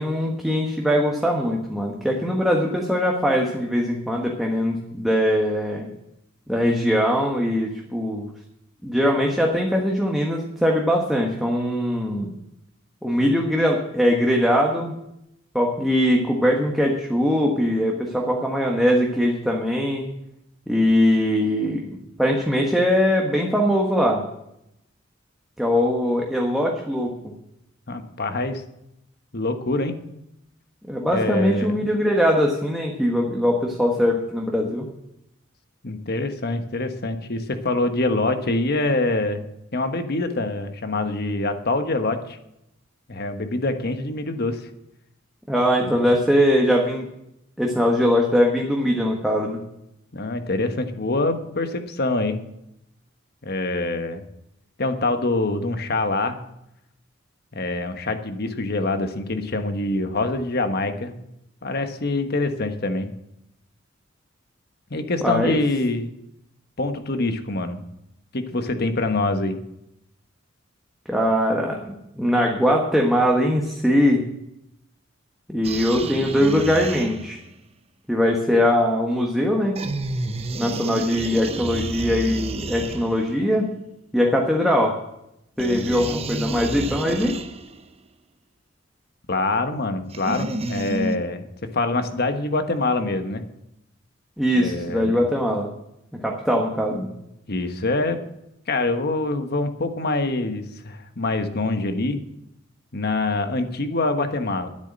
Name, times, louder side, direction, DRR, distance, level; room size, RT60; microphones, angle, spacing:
voice 1, 0.0-5.9 6.5-8.3 8.8-12.3 13.0-14.9 15.5-20.0 20.7-24.2 25.6-27.3 30.9-34.9 45.5-47.1 47.6-49.6 65.2-65.6 71.1-74.2 75.5-77.4 78.1-79.8 80.5-83.7 84.1-84.9 85.6-87.4 94.4-95.7 96.1-97.1, equal, ahead, -1 dB, 1.3 m, -21 dB
voice 2, 27.9-28.6 29.3-29.9 31.1-31.9 35.8-39.4 39.7-42.4 43.1-44.6 45.8-46.0 50.1-52.4 53.4-54.2 54.8-56.4 57.5-61.2 61.6-63.1 64.9-66.1 66.8-67.8 68.3-69.6 89.3-91.5 91.7-93.4 94.5-95.1 97.5-98.2 98.7-102.2 102.9-104.7, left 2 dB, 55° left, 8 dB, 1.2 m, -25 dB
sound 1, 75.6-77.5 79.8-83.5 85.6-87.9 90.1-91.2, right 2 dB, 30° right, 0.7 m, -30 dB
10.0 x 8.2 x 9.7 m, 0.83 s
head